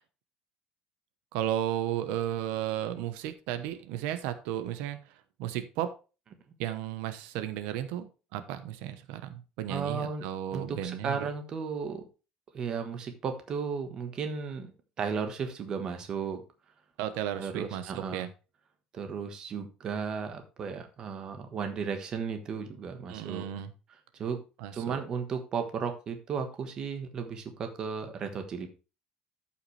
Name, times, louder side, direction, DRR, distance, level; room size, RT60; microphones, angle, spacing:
voice 1, 1.3-5.0 5.4-5.9 6.6-11.3 17.0-18.3 23.1-23.7 24.6-25.0, right 11 dB, 85° right, 10 dB, 1.0 m, -34 dB
voice 2, 9.7-10.2 10.5-12.0 12.5-14.7 15.0-16.4 17.4-18.2 18.9-23.4 24.2-24.4 24.7-28.7, right 6 dB, 30° right, 6 dB, 1.2 m, -34 dB
13.0 x 5.7 x 3.3 m, 0.32 s
cardioid pair, 175°, 2 cm